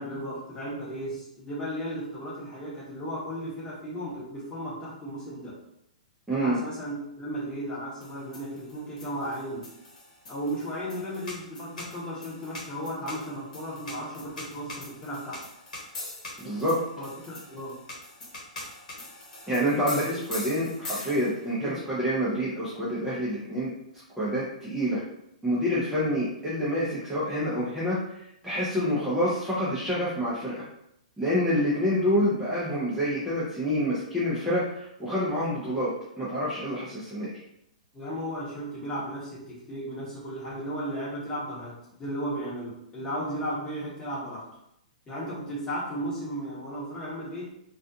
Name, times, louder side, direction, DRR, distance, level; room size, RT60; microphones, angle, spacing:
voice 1, 0.0-5.6 6.3-9.7 10.3-15.5 17.0-17.8 19.9-20.2 21.6-21.8 37.9-44.5 45.1-47.4, equal, 20° left, -6 dB, 1.1 m, -35 dB
sound 1, 8.0-21.5, left 2 dB, 70° left, 1.0 m, -42 dB
voice 2, 16.4-16.8 19.5-20.0 20.3-23.7 24.2-25.0 25.4-30.6 31.2-35.9 36.2-37.3, equal, 5° right, -10 dB, 0.6 m, -27 dB
2.4 x 2.3 x 2.7 m, 0.78 s
hypercardioid pair, 125°, 4 cm